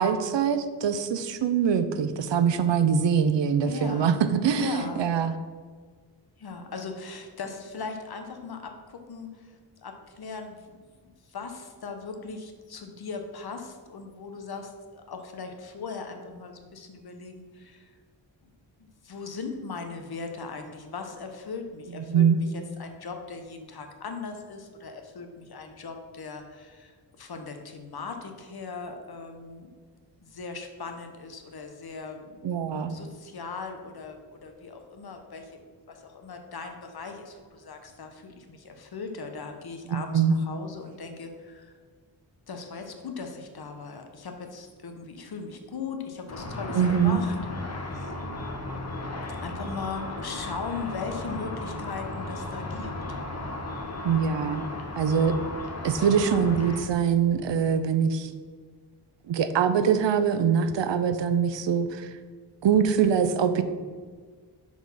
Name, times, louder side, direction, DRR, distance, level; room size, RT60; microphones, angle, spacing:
voice 1, 0.0-5.3 22.1-22.4 32.4-32.9 39.9-40.3 46.7-47.2 54.0-54.6 55.0-55.4 55.8-58.3 59.3-62.1 62.6-63.6, right 7 dB, 90° right, 10 dB, 0.6 m, -23 dB
voice 2, 3.6-4.1 4.6-5.1 6.4-17.9 18.8-22.5 22.8-29.7 30.2-35.6 35.9-41.7 42.5-47.3 47.6-48.1 49.4-53.2, left 4 dB, 60° left, 5 dB, 1.0 m, -39 dB
Car / Traffic noise roadway noise / Engine, 46.3-56.8, left 2 dB, 35° left, 1.0 m, -35 dB
6.1 x 5.0 x 5.5 m, 1.5 s
wide cardioid pair, 125°, 42 cm